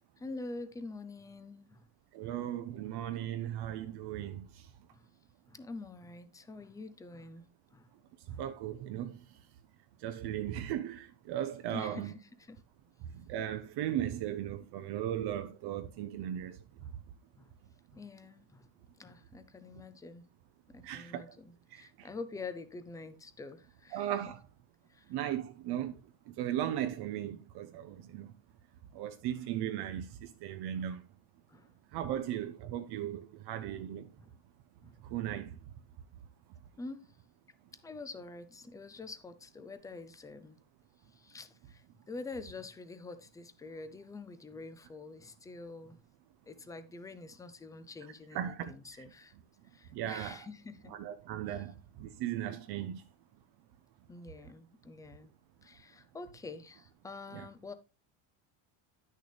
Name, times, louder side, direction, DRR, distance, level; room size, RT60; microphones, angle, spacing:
voice 1, 0.2-1.9 2.2-2.3 4.9-5.0 5.5-7.5 7.7-7.9 8.3-8.4 11.7-12.6 16.8-17.0 17.4-17.5 17.9-18.7 19.0-20.2 20.7-24.1 24.9-25.1 30.7-30.9 31.5-31.7 33.5-33.6 34.2-34.3 34.8-34.9 36.8-37.1 37.8-40.6 41.1-46.0 46.4-49.4 49.7-50.9 51.5-51.6 54.1-55.3 55.6-57.7, left 3 dB, 10° left, 0.4 m, -46 dB
voice 2, 2.1-4.7 8.3-9.2 10.0-12.1 13.0-16.6 20.8-21.4 21.7-22.1 23.9-24.4 25.1-26.0 26.3-28.3 28.9-31.0 31.9-34.1 35.0-35.6 48.3-49.0 49.9-50.4 50.9-53.0 57.3-57.5, right 11 dB, 55° right, 0.7 m, -37 dB
10.0 x 6.5 x 3.3 m
cardioid pair, 150°, 47 cm